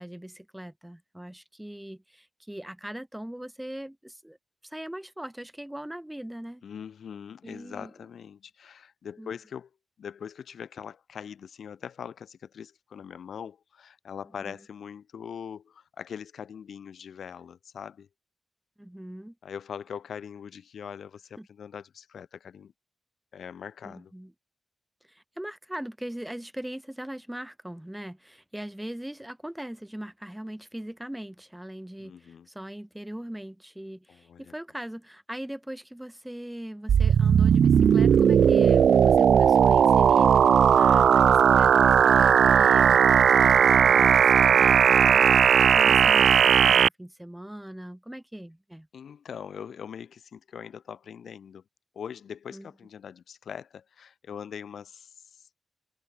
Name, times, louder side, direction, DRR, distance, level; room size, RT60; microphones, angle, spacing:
voice 1, 0.0-4.4 4.6-6.6 7.4-7.9 9.2-9.3 14.4-14.6 18.8-19.4 21.4-21.5 23.8-24.3 25.0-48.9 52.5-52.7, right 1 dB, 5° right, 5.7 m, -40 dB
voice 2, 6.6-9.7 10.0-18.1 19.4-22.7 23.3-24.1 32.0-32.5 34.1-34.5 48.9-51.6 51.9-55.5, left 7 dB, 85° left, 2.6 m, -42 dB
sound 1, 36.9-46.9, right 8 dB, 90° right, 0.6 m, -18 dB
wide cardioid pair, 105°, 0 cm